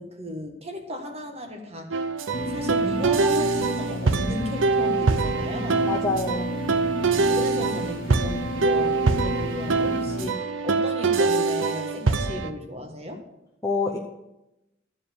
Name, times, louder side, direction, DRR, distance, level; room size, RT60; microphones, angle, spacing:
voice 1, 0.0-2.0 2.5-5.9 7.2-13.2, equal, 30° right, 4 dB, 1.5 m, -34 dB
sound 1, 1.9-12.5, right 4 dB, 65° right, 0.7 m, -24 dB
sound 2, 2.3-10.3, left 1 dB, 45° left, 0.8 m, -33 dB
voice 2, 5.9-6.5 13.6-14.0, left 3 dB, 15° left, -2 dB, 0.8 m, -26 dB
13.5 x 5.0 x 7.3 m, 0.93 s
head